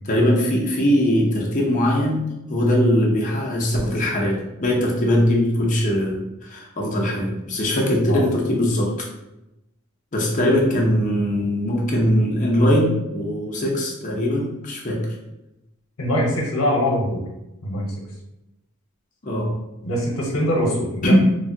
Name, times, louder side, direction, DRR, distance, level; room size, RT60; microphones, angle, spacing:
voice 1, 0.0-8.9 10.1-15.1 19.2-19.5 21.0-21.1, equal, 35° left, -2 dB, 0.6 m, -21 dB
voice 2, 16.0-17.2 17.6-17.9 19.8-21.1, equal, 75° left, -3 dB, 0.8 m, -22 dB
3.1 x 2.1 x 2.6 m, 0.93 s
head